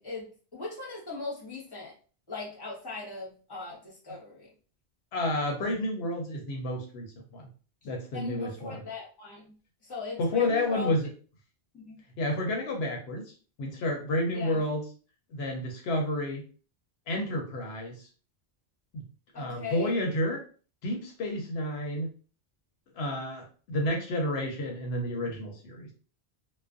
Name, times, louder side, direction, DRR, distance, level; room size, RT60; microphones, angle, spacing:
voice 1, 0.0-1.9 2.3-4.5 8.1-9.5 9.8-10.9 11.7-12.0 14.3-14.6 19.3-19.9, left 3 dB, 25° left, -4 dB, 0.9 m, -39 dB
voice 2, 5.1-7.5 7.8-8.8 10.2-11.1 12.2-14.8 15.3-16.4 17.1-18.1 18.9-19.0 19.3-20.4 20.8-22.1 22.9-25.9, left 1 dB, 75° left, 1 dB, 0.8 m, -30 dB
2.3 x 2.1 x 2.5 m, 0.38 s
omnidirectional pair, 1.1 m